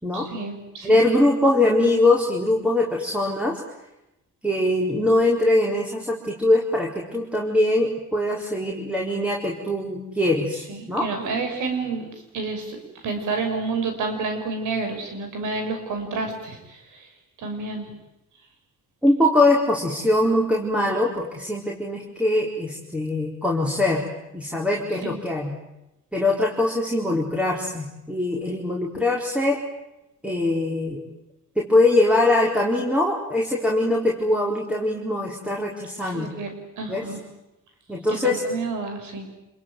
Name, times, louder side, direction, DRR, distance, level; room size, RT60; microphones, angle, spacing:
voice 1, 0.1-1.0 10.7-12.1 12.3-17.1 17.4-17.9 25.0-25.2 36.0-37.2 38.1-39.3, right 4 dB, 80° right, 6 dB, 6.6 m, -30 dB
voice 2, 0.8-3.6 4.4-11.1 19.0-24.0 24.3-25.5 26.1-29.6 30.2-31.0 31.6-36.3 36.9-37.1 37.9-38.4, left 2 dB, 5° right, -1 dB, 4.6 m, -22 dB
27.5 x 22.0 x 9.4 m, 0.91 s
cardioid pair, 90°, 30 cm